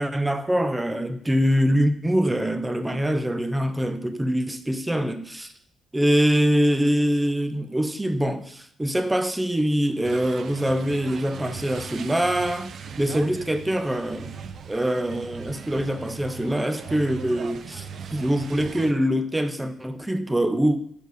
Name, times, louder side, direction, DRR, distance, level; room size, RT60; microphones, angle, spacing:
voice 1, 0.0-5.5 5.9-14.3 14.7-17.9 18.1-20.8, equal, 10° right, 0.6 m, -24 dB
sound 1, 10.0-18.9, right 6 dB, 60° right, 0.4 m, -39 dB
5.2 x 4.4 x 4.7 m
cardioid pair, 85°, 0 cm